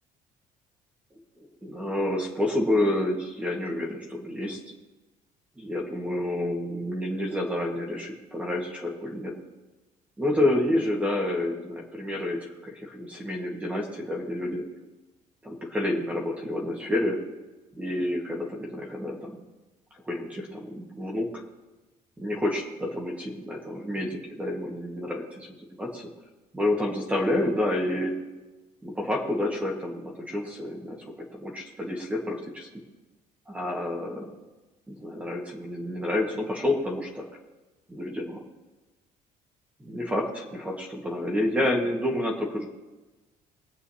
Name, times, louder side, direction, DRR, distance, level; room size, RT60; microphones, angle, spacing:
voice 1, 1.1-4.6 5.6-9.3 10.2-14.6 15.4-17.2 17.7-19.4 20.0-21.3 22.2-26.0 26.5-28.1 28.8-32.7 33.5-34.3 34.9-37.2 37.9-38.4 39.8-42.7, left 1 dB, 10° right, -1 dB, 1.6 m, -29 dB
23.5 x 8.2 x 2.8 m, 1.2 s
cardioid pair, 180°, 15 cm